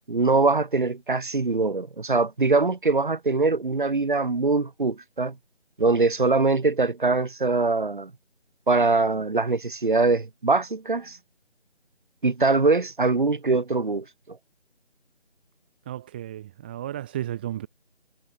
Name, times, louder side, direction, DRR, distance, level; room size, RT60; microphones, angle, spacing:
voice 1, 0.1-5.4 5.8-8.1 8.7-11.2 12.2-14.4, right 3 dB, 45° right, 4.7 m, -23 dB
voice 2, 15.9-17.7, right 12 dB, 10° right, 2.0 m, -33 dB
figure-of-eight pair, 160°, 35 cm